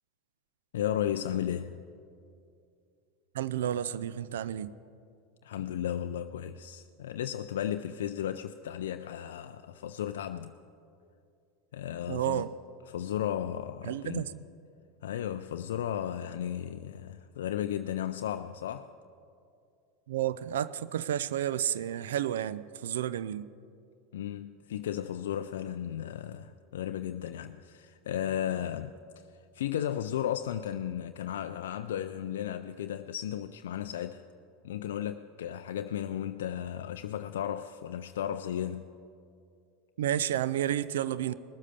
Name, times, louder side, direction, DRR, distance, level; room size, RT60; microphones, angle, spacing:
voice 1, 0.7-1.8 5.4-10.6 11.7-12.5 12.9-14.3 15.0-18.9 24.1-28.9 29.5-34.3 34.6-38.9, left 10 dB, 75° left, 0.4 m, -34 dB
voice 2, 3.3-4.7 12.1-12.5 13.9-14.4 20.1-23.5 40.0-41.3, right 11 dB, 75° right, 0.4 m, -31 dB
19.5 x 7.4 x 6.8 m
hypercardioid pair, 90°, 0 cm